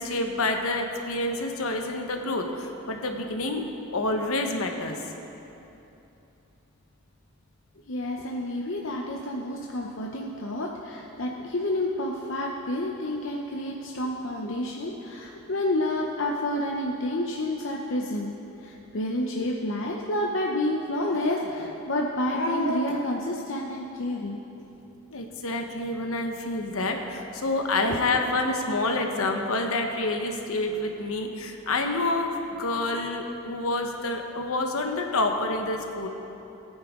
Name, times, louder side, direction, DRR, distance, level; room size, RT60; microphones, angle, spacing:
voice 1, 0.0-3.6 3.9-5.0 25.1-36.1, left 2 dB, 75° left, 3 dB, 1.1 m, -28 dB
voice 2, 7.9-18.3 18.6-24.4, left 1 dB, 55° left, -1 dB, 0.7 m, -29 dB
18.5 x 9.6 x 3.7 m, 2.9 s
head